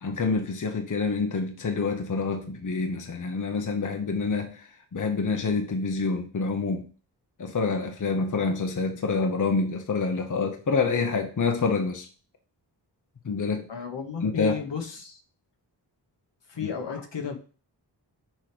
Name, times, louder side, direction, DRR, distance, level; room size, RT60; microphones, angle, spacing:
voice 1, 0.0-6.9 7.4-12.1 13.2-13.7 14.2-14.5, left 4 dB, 45° left, 0.9 m, -27 dB
voice 2, 13.7-15.2 16.5-17.4, left 7 dB, 75° left, 1.4 m, -33 dB
6.2 x 3.2 x 5.0 m
cardioid pair, 60°, 43 cm